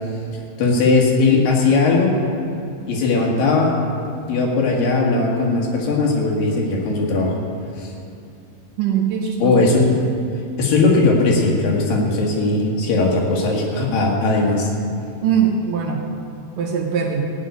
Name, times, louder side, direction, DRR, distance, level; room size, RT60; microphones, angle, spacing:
voice 1, 0.6-2.2 2.9-3.8 4.3-7.3 7.8-7.9 9.4-10.0 10.6-14.7, left 3 dB, 65° left, -1 dB, 3.3 m, -18 dB
voice 2, 8.8-9.6 15.2-16.1 16.6-17.3, right 7 dB, 70° right, 0 dB, 2.4 m, -21 dB
16.5 x 5.8 x 9.6 m, 2.6 s
omnidirectional pair, 4.6 m